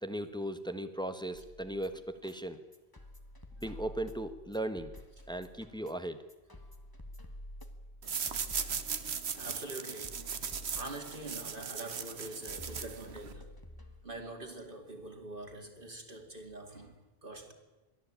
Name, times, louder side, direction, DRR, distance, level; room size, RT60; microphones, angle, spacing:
voice 1, 0.0-2.6 3.6-4.9 5.3-6.2, right 1 dB, 5° left, 1.2 m, -37 dB
sound 1, 1.3-14.3, left 1 dB, 20° left, 1.5 m, -50 dB
sound 2, 8.0-13.3, right 6 dB, 80° right, 1.4 m, -38 dB
voice 2, 9.4-10.3 10.7-13.6 14.0-17.5, right 2 dB, 55° right, 2.7 m, -45 dB
22.5 x 14.5 x 8.7 m
omnidirectional pair, 1.1 m